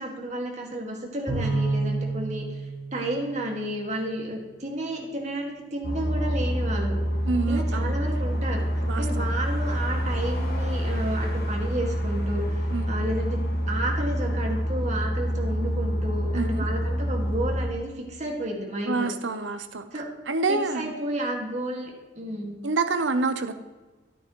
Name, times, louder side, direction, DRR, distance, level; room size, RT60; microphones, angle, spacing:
voice 1, 0.0-7.0 7.5-8.7 9.0-19.1 19.9-20.1 20.5-21.9 22.2-22.6, right 1 dB, 40° right, 0 dB, 2.1 m, -32 dB
Bowed string instrument, 1.3-3.9, right 3 dB, 5° left, 3.5 m, -29 dB
sound 1, 5.8-17.6, equal, 50° left, 1.9 m, -27 dB
voice 2, 7.3-7.9 8.9-9.3 12.7-12.9 16.3-16.7 18.9-19.9 20.3-20.9 22.6-23.5, right 3 dB, 80° right, 10 dB, 0.8 m, -27 dB
12.0 x 9.8 x 3.1 m, 1.2 s
head